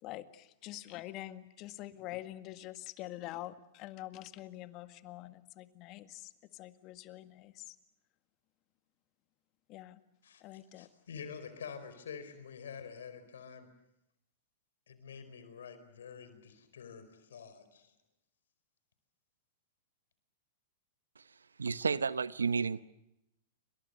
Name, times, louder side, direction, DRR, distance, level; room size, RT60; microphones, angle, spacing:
voice 1, 0.0-7.8 9.7-10.0 10.4-10.9, left 15 dB, 40° left, 1.8 m, -46 dB
voice 2, 10.7-13.7 14.9-17.9, left 6 dB, 75° left, 4.6 m, -47 dB
voice 3, 21.6-22.8, right 5 dB, 85° right, 1.0 m, -31 dB
29.5 x 25.5 x 6.8 m
hypercardioid pair, 105°, 0 cm